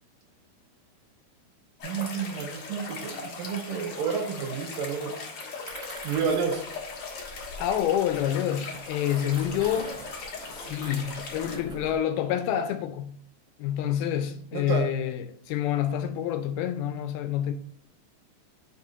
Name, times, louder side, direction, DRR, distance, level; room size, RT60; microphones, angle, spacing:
sound 1, 1.8-11.6, left 4 dB, 65° left, 1.4 m, -39 dB
voice 1, 1.8-5.1 6.0-6.6 14.5-14.9, right 6 dB, 75° right, 2.2 m, -30 dB
sound 2, 5.6-8.2 8.7-12.0, right 1 dB, 35° right, 1.2 m, -44 dB
voice 2, 7.6-10.0 10.5-13.2 13.6-17.5, left 10 dB, 80° left, 2.3 m, -28 dB
5.3 x 4.8 x 3.8 m
omnidirectional pair, 4.6 m